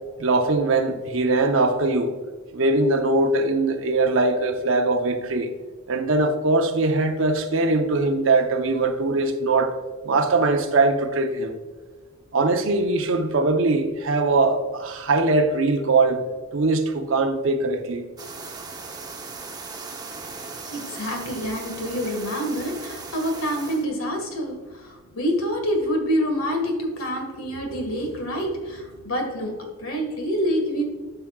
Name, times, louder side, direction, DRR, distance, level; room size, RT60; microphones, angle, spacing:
voice 1, 0.2-2.2 2.5-5.5 5.9-9.7 10.0-11.5 12.3-16.2 16.5-18.1, right 3 dB, 65° right, 0.8 m, -21 dB
sound 1, 18.2-23.8, right 4 dB, 20° right, 0.8 m, -38 dB
voice 2, 20.7-30.8, equal, 80° left, 1.8 m, -27 dB
12.0 x 5.7 x 2.4 m
head